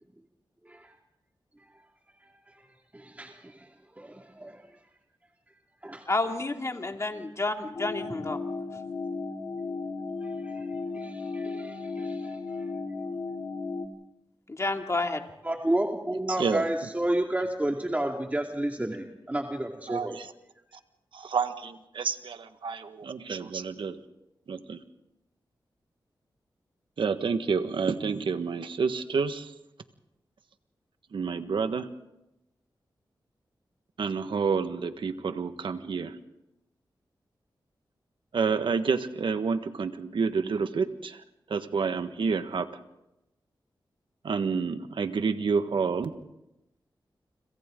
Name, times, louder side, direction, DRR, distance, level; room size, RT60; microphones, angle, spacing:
voice 1, 2.2-2.7 2.9-4.7 5.8-6.0 10.2-10.7 10.9-12.7 15.4-20.2, right 1 dB, 20° right, 1 dB, 2.4 m, -31 dB
voice 2, 6.1-8.4 8.7-8.8 14.5-15.2, left 2 dB, 35° left, 3 dB, 2.6 m, -30 dB
sound 1, 7.7-13.9, left 4 dB, 65° left, 2.9 m, -35 dB
voice 3, 19.9-20.3 21.1-24.0 24.5-24.8 27.0-29.5 31.1-31.9 34.0-36.2 38.3-42.7 44.2-46.1, right 5 dB, 80° right, 9 dB, 1.5 m, -29 dB
29.5 x 26.5 x 3.9 m, 0.89 s
cardioid pair, 65°, 8 cm